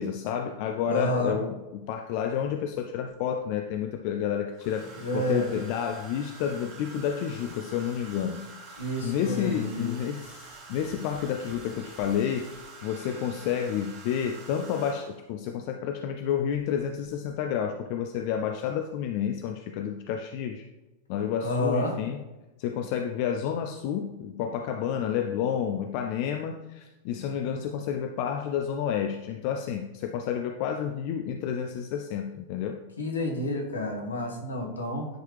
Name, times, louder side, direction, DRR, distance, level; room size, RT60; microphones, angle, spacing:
voice 1, 0.0-12.5 12.8-20.7 21.1-22.2 22.6-32.8, left 8 dB, 45° left, 5 dB, 0.5 m, -30 dB
voice 2, 0.8-1.4 5.0-5.5 8.8-9.9 21.4-21.9 33.0-35.1, left 1 dB, 70° left, 1 dB, 1.7 m, -29 dB
Domestic sounds home sounds, 4.5-15.3 16.5-16.8 17.1-17.4, right 3 dB, 35° right, 1.7 m, -47 dB
10.0 x 4.7 x 3.3 m, 1.1 s
figure-of-eight pair, 90°, 0 cm